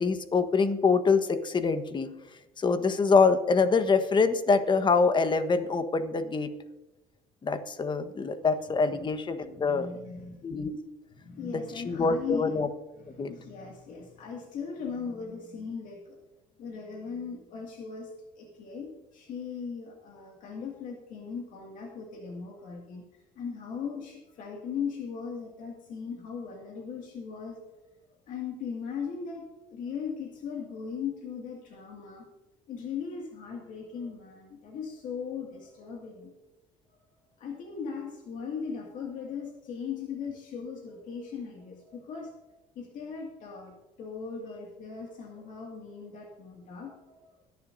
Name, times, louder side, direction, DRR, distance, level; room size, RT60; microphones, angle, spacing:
voice 1, 0.0-2.1 2.6-6.5 7.4-9.9 10.4-10.8 11.9-12.7 13.2-13.3, left 4 dB, 30° left, 10 dB, 1.3 m, -25 dB
voice 2, 9.7-10.6 11.1-12.6 13.0-16.2 16.6-18.1 18.4-27.6 28.3-29.4 29.7-32.2 32.7-36.3 37.4-42.3 42.8-47.3, left 6 dB, 65° left, 0 dB, 2.2 m, -38 dB
21.5 x 10.5 x 2.7 m, 1.0 s
supercardioid pair, 90°, 15 cm